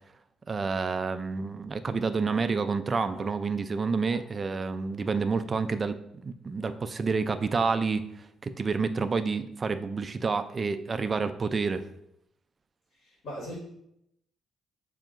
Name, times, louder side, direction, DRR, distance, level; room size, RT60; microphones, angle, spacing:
voice 1, 0.5-6.0 6.2-8.1 8.4-11.8, right 4 dB, 35° right, 10 dB, 0.3 m, -29 dB
sound 1, 2.3-2.4 3.1-3.3 4.1-4.2 5.0-5.2 6.6-6.7 7.7-7.8, right 1 dB, 10° right, 0.8 m, -50 dB
voice 2, 13.0-13.5, equal, 65° left, -4 dB, 1.7 m, -39 dB
7.0 x 2.8 x 2.5 m, 0.76 s
cardioid pair, 90°, 0 cm